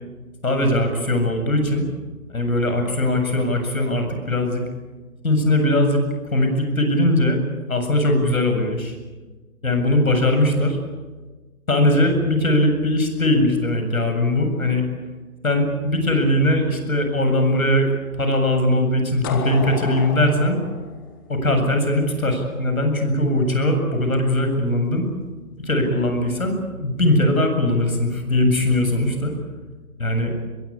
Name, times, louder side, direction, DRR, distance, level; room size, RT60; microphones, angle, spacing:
voice 1, 0.4-1.8 2.3-4.6 5.2-7.4 7.7-8.9 9.6-10.8 11.7-14.8 15.4-17.9 18.2-20.6 21.3-25.1 25.5-29.3 30.0-30.3, left 1 dB, 70° left, 5 dB, 7.7 m, -20 dB
sound 1, 19.2-22.1, left 5 dB, 15° left, 1.5 m, -32 dB
25.5 x 22.0 x 8.5 m, 1.3 s
figure-of-eight pair, 150°, 43 cm